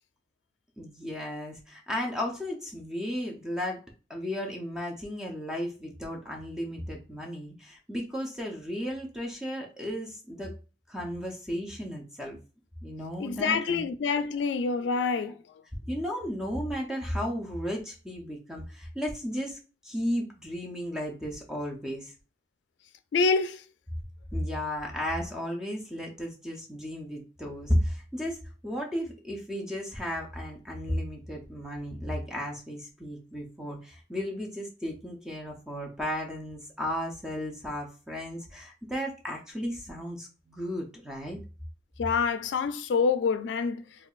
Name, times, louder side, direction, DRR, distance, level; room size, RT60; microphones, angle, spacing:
voice 1, 0.8-3.8 4.1-10.6 10.9-12.4 12.8-13.9 15.9-19.6 19.8-22.1 24.3-28.4 28.6-41.4, equal, 5° right, 0.5 m, -34 dB
voice 2, 13.2-15.4 23.1-23.6 42.0-43.8, left 5 dB, 90° left, 0.3 m, -26 dB
4.5 x 2.3 x 2.4 m
head